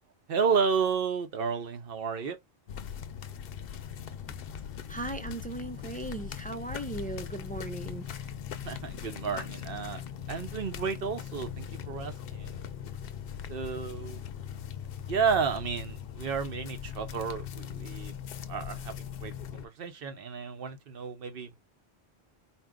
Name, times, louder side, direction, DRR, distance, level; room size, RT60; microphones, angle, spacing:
voice 1, 0.3-2.4 8.6-12.6 13.5-14.2 15.1-18.1 18.5-21.5, right 6 dB, 60° right, 1.1 m, -32 dB
sound 1, 2.7-19.7, left 9 dB, 65° left, 0.7 m, -40 dB
voice 2, 4.9-8.3, right 2 dB, 10° left, 0.4 m, -38 dB
4.4 x 2.3 x 3.6 m
omnidirectional pair, 1.1 m